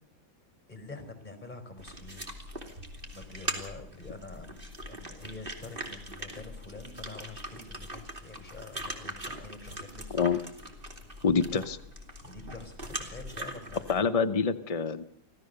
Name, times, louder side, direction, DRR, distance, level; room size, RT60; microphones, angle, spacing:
voice 1, 0.7-2.3 3.1-10.2 12.2-13.9, left 3 dB, 20° left, 8 dB, 4.5 m, -46 dB
sound 1, 1.8-14.0, right 1 dB, 25° right, 2.9 m, -41 dB
voice 2, 11.2-11.8 13.9-15.0, left 5 dB, 65° left, 9 dB, 0.3 m, -26 dB
26.0 x 16.5 x 6.7 m, 0.75 s
omnidirectional pair, 2.1 m